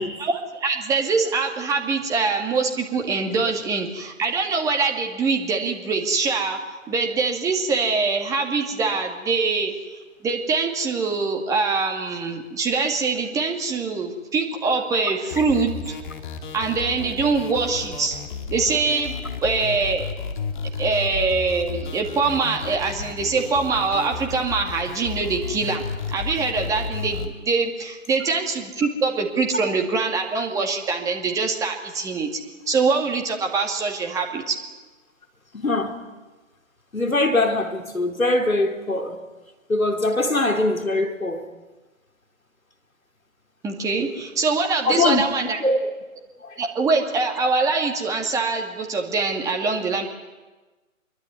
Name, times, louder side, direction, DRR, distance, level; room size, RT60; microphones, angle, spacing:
voice 1, 0.2-6.6 6.9-9.7 10.2-15.9 16.5-18.2 18.5-19.1 19.4-20.1 20.8-25.8 26.1-32.4 32.7-34.6 43.6-45.6 46.6-50.1, right 4 dB, 10° right, 2.3 m, -23 dB
sound 1, 15.3-27.3, left 5 dB, 35° left, 3.0 m, -33 dB
voice 2, 35.5-36.0 36.9-39.2 39.7-41.5 44.8-45.8 46.4-46.6, left 2 dB, 90° left, 4.5 m, -22 dB
25.5 x 23.0 x 9.7 m
figure-of-eight pair, 145°, 40 cm